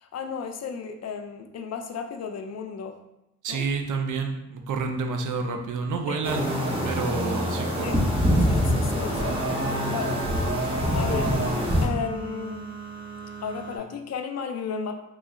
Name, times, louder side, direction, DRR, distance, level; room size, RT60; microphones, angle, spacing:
voice 1, 0.0-3.0 3.5-3.7 6.1-6.2 7.8-8.0 8.5-9.6 9.8-10.2 10.7-11.4 11.8-12.7 13.4-14.9, left 6 dB, 55° left, 6 dB, 0.5 m, -34 dB
voice 2, 3.4-6.5 6.8-8.0, right 4 dB, 80° right, 5 dB, 0.5 m, -29 dB
sound 1, 6.2-11.9, equal, 20° right, 1.0 m, -25 dB
sound 2, 7.8-13.8, right 5 dB, 15° left, 1.1 m, -39 dB
3.7 x 2.0 x 3.6 m, 0.86 s
cardioid pair, 60°, 30 cm